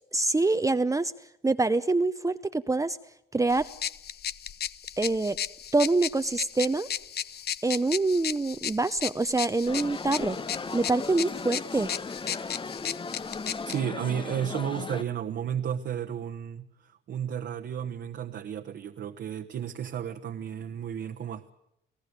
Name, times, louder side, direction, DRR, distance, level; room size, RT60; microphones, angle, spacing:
voice 1, 0.1-1.1 1.4-3.0 3.3-3.7 5.0-5.4 5.7-6.9 7.6-10.4 10.7-11.9, right 3 dB, 15° right, 0.8 m, -25 dB
sound 1, 3.5-13.8, left 9 dB, 55° left, 0.8 m, -35 dB
sound 2, 9.6-15.0, left 4 dB, 25° left, 0.9 m, -37 dB
voice 2, 13.6-21.5, right 9 dB, 60° right, 1.3 m, -33 dB
29.0 x 17.5 x 8.2 m
cardioid pair, 90°, 20 cm